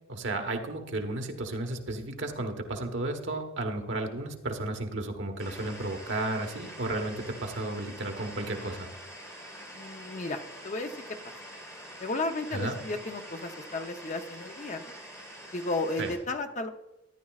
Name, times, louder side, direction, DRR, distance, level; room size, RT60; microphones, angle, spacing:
voice 1, 0.0-8.9 12.5-12.8 16.0-16.1, right 2 dB, 70° right, 4 dB, 1.3 m, -33 dB
sound 1, 5.4-16.1, equal, 15° left, 4.1 m, -45 dB
voice 2, 9.7-10.9 12.0-14.9 15.5-16.7, left 2 dB, 40° left, 6 dB, 0.8 m, -33 dB
13.5 x 10.5 x 2.4 m, 0.95 s
head